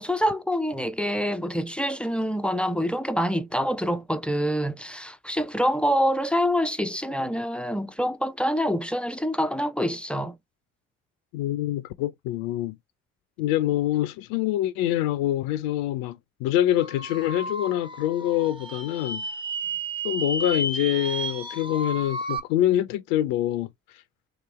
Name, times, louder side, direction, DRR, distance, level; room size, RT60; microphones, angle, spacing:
voice 1, 0.0-10.4, equal, 5° left, 0.4 m, -26 dB
voice 2, 11.3-12.8 13.4-19.2 20.0-23.7, left 13 dB, 70° left, 0.5 m, -25 dB
sound 1, 16.8-22.4, right 2 dB, 15° right, 0.8 m, -32 dB
3.1 x 2.9 x 3.1 m
hypercardioid pair, 50°, 39 cm